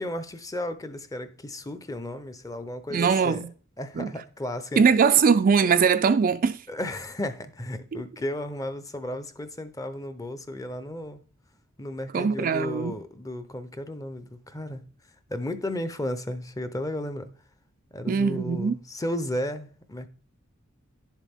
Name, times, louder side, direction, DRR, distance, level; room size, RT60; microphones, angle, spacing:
voice 1, 0.0-3.4 3.8-4.8 6.7-11.2 11.8-14.8 15.3-17.3 17.9-20.1, left 1 dB, 15° left, 0.7 m, -34 dB
voice 2, 2.9-3.5 4.0-4.1 4.8-6.6 7.9-8.0 12.1-12.9 18.1-18.8, right 6 dB, 40° right, 0.4 m, -21 dB
10.5 x 7.4 x 3.5 m
head